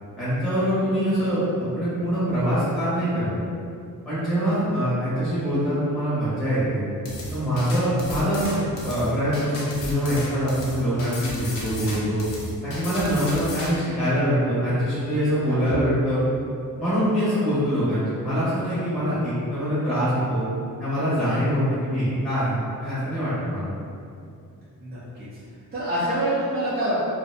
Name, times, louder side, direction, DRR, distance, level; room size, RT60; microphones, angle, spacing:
voice 1, 0.2-3.3 4.1-6.9 7.3-8.5 8.8-12.2 12.6-16.2 16.8-20.4 20.8-23.7, equal, ahead, -13 dB, 0.8 m, -24 dB
sound 1, 7.1-13.7, left 1 dB, 65° left, 0.5 m, -34 dB
voice 2, 24.8-25.3 25.7-26.9, right 1 dB, 30° right, -12 dB, 0.4 m, -26 dB
2.5 x 2.1 x 2.5 m, 2.5 s
wide cardioid pair, 165°, 36 cm